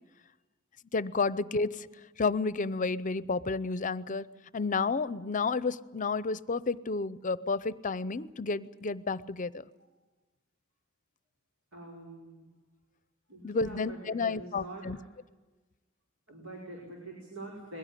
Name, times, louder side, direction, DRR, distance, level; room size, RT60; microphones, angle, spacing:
voice 1, 0.9-1.9 2.2-4.3 4.5-9.5 13.4-15.0, left 4 dB, 40° left, 17 dB, 0.6 m, -31 dB
voice 2, 11.7-12.5 13.3-14.9 16.3-17.8, right 2 dB, 85° right, -2 dB, 5.3 m, -45 dB
21.5 x 16.5 x 10.0 m, 1.2 s
head